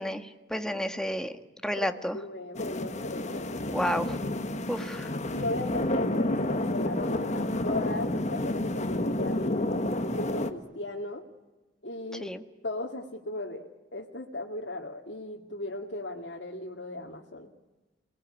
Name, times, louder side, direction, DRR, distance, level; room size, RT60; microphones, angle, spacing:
voice 1, 0.0-1.3 1.6-2.2 3.7-4.2 4.7-5.1 12.2-12.4, equal, 5° left, 7 dB, 1.5 m, -31 dB
voice 2, 2.1-3.5 5.1-11.2 11.8-12.3 12.6-17.5, left 2 dB, 85° left, 0 dB, 2.1 m, -37 dB
sound 1, 2.5-10.5, left 1 dB, 40° left, 1.5 m, -30 dB
28.5 x 20.0 x 9.9 m, 1.2 s
head